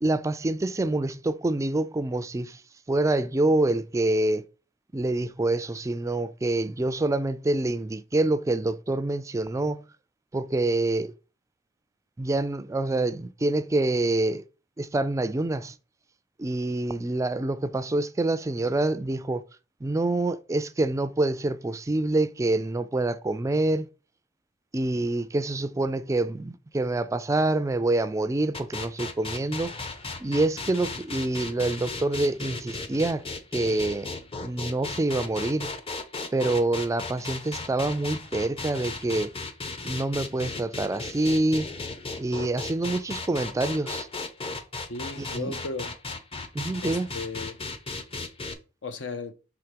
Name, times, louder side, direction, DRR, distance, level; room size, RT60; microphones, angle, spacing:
voice 1, 0.0-2.6 2.9-4.5 4.9-9.8 10.3-11.1 12.2-14.4 14.8-15.7 16.4-19.4 19.8-23.9 24.7-29.7 30.2-33.2 33.5-34.1 34.4-35.7 36.3-39.3 39.8-41.7 42.2-44.1 45.2-45.5 46.5-47.1, right 2 dB, 15° right, 0.3 m, -26 dB
sound 1, 28.5-48.5, left 3 dB, 30° left, 0.7 m, -36 dB
voice 2, 44.9-46.0 46.8-47.6 48.8-49.3, left 3 dB, 80° left, 0.8 m, -35 dB
5.8 x 3.5 x 5.1 m
head